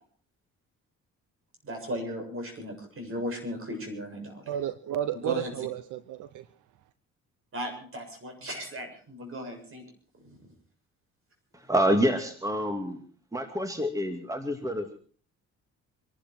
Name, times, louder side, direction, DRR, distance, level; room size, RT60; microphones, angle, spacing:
voice 1, 1.6-4.5 5.1-5.5 7.5-9.8 10.2-10.5, equal, 45° right, 7.2 m, -36 dB
voice 2, 4.5-6.5, right 11 dB, 80° right, 0.9 m, -32 dB
voice 3, 11.5-13.0 13.3-15.0, equal, 10° right, 2.4 m, -27 dB
26.0 x 12.0 x 4.6 m
cardioid pair, 90°, 30 cm